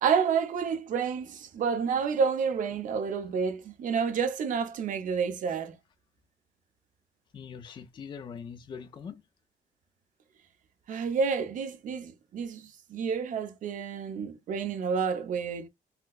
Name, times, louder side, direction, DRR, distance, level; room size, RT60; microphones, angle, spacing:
voice 1, 0.0-5.8 10.9-15.7, right 6 dB, 65° right, 0.8 m, -29 dB
voice 2, 7.3-9.2, left 6 dB, 35° left, 0.4 m, -42 dB
4.1 x 2.1 x 2.4 m
cardioid pair, 135°, 14 cm